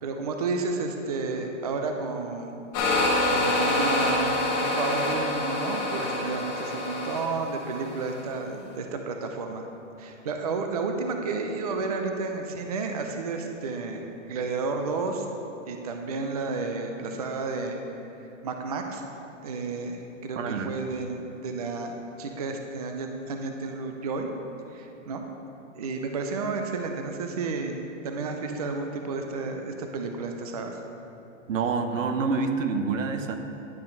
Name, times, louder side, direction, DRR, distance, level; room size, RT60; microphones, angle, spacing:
voice 1, 0.0-2.6 3.2-9.7 10.0-15.3 15.7-17.8 18.2-19.0 19.4-24.3 24.7-25.2 25.7-30.8, right 3 dB, 30° right, 4 dB, 0.4 m, -31 dB
sound 1, 2.7-8.2, left 2 dB, 20° left, 1.3 m, -26 dB
voice 2, 20.3-20.7 31.5-33.4, right 4 dB, 90° right, 7 dB, 1.0 m, -27 dB
10.5 x 5.5 x 5.2 m, 2.9 s
hypercardioid pair, 170°, 38 cm